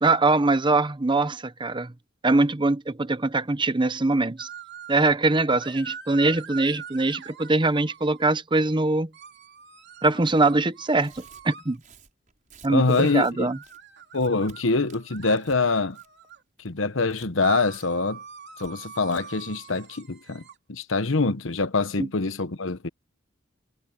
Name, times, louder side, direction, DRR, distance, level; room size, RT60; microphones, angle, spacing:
voice 1, 0.0-1.9 2.2-4.5 4.9-9.1 10.0-11.8 12.6-13.6 22.0-22.1, right 2 dB, 25° right, 0.9 m, -22 dB
sound 1, 4.4-5.1 5.6-8.4 9.1-11.8 13.0-16.4 17.4-20.5, right 7 dB, 60° right, 3.3 m, -43 dB
Tearing, 10.2-10.4 10.9-13.3 13.6-13.8 14.1-14.6 14.9-15.6 15.9-16.3 16.6-17.3 17.7-17.9 18.1-18.2 18.6-18.7 19.0-19.2, right 5 dB, 40° right, 6.0 m, -53 dB
voice 2, 12.7-13.5 14.1-16.0 16.6-18.2 18.6-20.4 20.7-22.9, left 3 dB, 75° left, 1.2 m, -24 dB
head